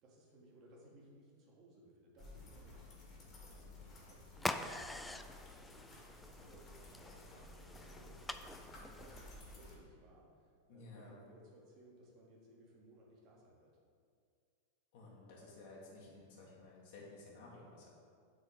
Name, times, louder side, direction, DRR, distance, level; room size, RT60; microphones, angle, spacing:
voice 1, 0.0-13.7, right 1 dB, 40° right, -3 dB, 1.9 m, -63 dB
sound 1, 2.2-9.7, left 1 dB, 30° left, 2.0 m, -55 dB
sound 2, 4.4-9.6, left 2 dB, 5° left, 0.3 m, -45 dB
voice 2, 10.7-11.2 14.9-17.9, left 2 dB, 50° left, -4 dB, 2.1 m, -54 dB
6.6 x 4.4 x 6.7 m, 2.2 s
figure-of-eight pair, 90°, 0 cm